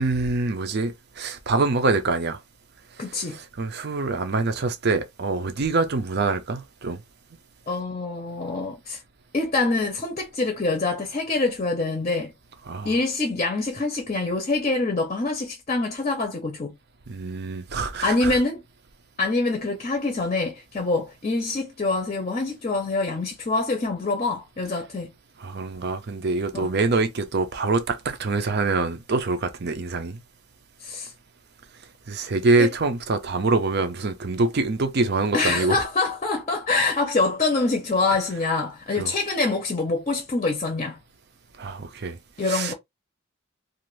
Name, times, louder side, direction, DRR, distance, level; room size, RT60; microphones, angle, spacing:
voice 1, 0.0-2.4 3.3-7.0 12.7-12.9 17.1-18.4 25.4-30.2 32.1-35.8 39.0-39.1 41.6-42.2 42.5-42.7, right 3 dB, 55° right, 0.6 m, -25 dB
voice 2, 3.0-3.4 7.7-9.0 9.3-12.3 12.8-16.8 18.0-18.6 19.2-25.1 26.5-26.7 30.8-31.1 32.6-32.7 35.3-41.0 42.4-42.7, left 3 dB, 35° left, 0.6 m, -25 dB
2.5 x 2.5 x 3.1 m
head